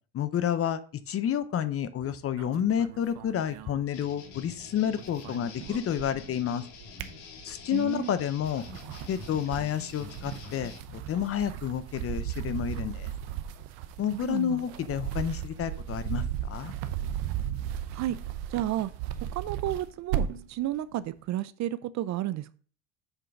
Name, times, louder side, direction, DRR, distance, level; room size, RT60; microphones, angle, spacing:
voice 1, 0.1-6.6 7.4-8.6 9.1-13.1 14.0-16.7, left 9 dB, 35° left, 13 dB, 0.6 m, -30 dB
sound 1, 2.3-4.5 4.8-6.4 6.7-7.8 8.3-20.5, right 10 dB, 85° right, 0.9 m, -36 dB
sound 2, 3.9-10.8, left 5 dB, 75° left, 1.8 m, -47 dB
voice 2, 7.7-8.1 14.1-14.6 17.9-18.2 18.5-18.9 19.3-22.5, right 13 dB, 45° right, 16 dB, 0.5 m, -32 dB
8.0 x 3.9 x 5.8 m, 0.42 s
cardioid pair, 115°, 39 cm